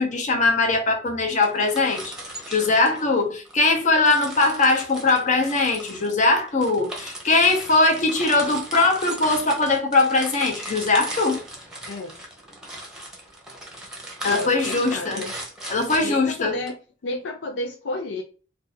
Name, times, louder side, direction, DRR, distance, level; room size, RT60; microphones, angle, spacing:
voice 1, 0.0-2.1 2.5-11.4 14.2-15.2 15.7-16.6, left 3 dB, 45° left, 0.8 m, -21 dB
sound 1, 1.3-3.6 4.0-16.7, right 1 dB, 5° right, 0.8 m, -37 dB
voice 2, 11.9-12.2 14.3-15.4 16.0-16.8 17.0-18.2, left 2 dB, 70° left, 0.4 m, -31 dB
2.6 x 2.5 x 4.0 m
head